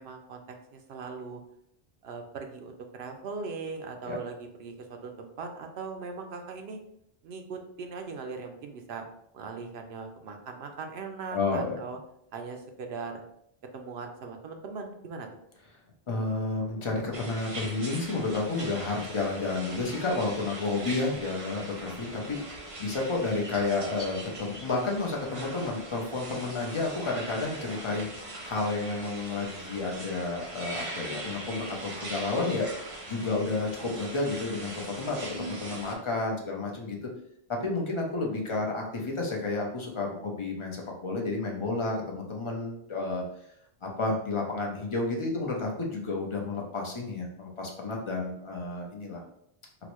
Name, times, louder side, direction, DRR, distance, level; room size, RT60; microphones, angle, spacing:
voice 1, 0.0-1.4 2.0-6.8 7.2-9.1 9.3-12.0 12.3-13.2 13.7-15.3, right 4 dB, 75° right, 4 dB, 0.8 m, -39 dB
voice 2, 11.3-11.8 16.1-32.7 33.1-37.0 37.5-43.2 43.8-49.2, left 3 dB, 35° left, 0 dB, 0.6 m, -31 dB
sound 1, 17.1-35.9, right 1 dB, 40° right, 0.5 m, -41 dB
3.9 x 2.1 x 3.0 m, 0.74 s
omnidirectional pair, 1.1 m